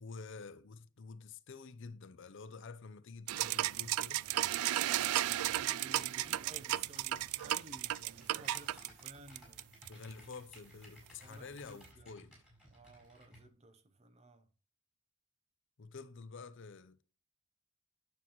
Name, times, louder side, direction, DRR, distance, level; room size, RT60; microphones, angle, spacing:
voice 1, 0.0-4.2 9.9-12.3 15.8-17.0, left 4 dB, 55° left, 0.6 m, -49 dB
sound 1, 3.3-10.1, right 13 dB, 80° right, 0.3 m, -34 dB
Computer keyboard, 4.8-13.5, equal, 5° right, 4.6 m, -60 dB
voice 2, 5.4-9.8 11.2-12.2 12.7-14.5, right 2 dB, 30° right, 0.8 m, -56 dB
9.4 x 7.3 x 3.0 m
head